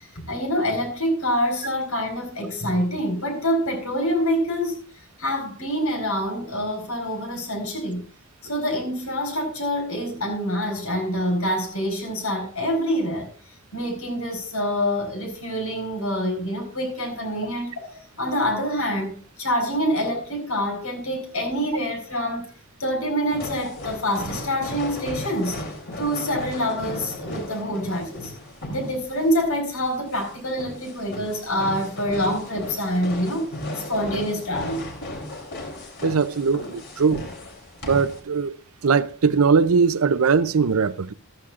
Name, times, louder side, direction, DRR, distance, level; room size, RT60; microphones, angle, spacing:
voice 1, 0.1-4.8 5.2-8.1 8.4-13.3 13.7-22.5 22.8-25.6 26.0-28.3 28.7-33.5 33.9-34.8, equal, 80° left, 4.8 m, -26 dB
sound 1, 23.3-38.2, left 1 dB, 55° left, 3.3 m, -36 dB
voice 2, 36.0-37.2 37.8-38.6 38.8-41.1, right 5 dB, 80° right, 0.6 m, -20 dB
14.0 x 13.5 x 2.5 m
head